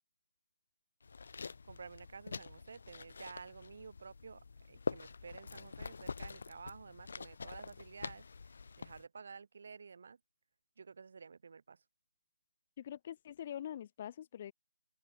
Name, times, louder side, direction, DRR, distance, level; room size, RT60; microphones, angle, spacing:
sound 1, 1.0-9.0, left 4 dB, 60° left, 0.9 m, -45 dB
voice 1, 1.7-10.2 10.8-11.8, right 5 dB, 55° right, 2.5 m, -52 dB
voice 2, 12.8-14.5, left 10 dB, 35° left, 0.4 m, -44 dB
open air
figure-of-eight pair, 155°, 0 cm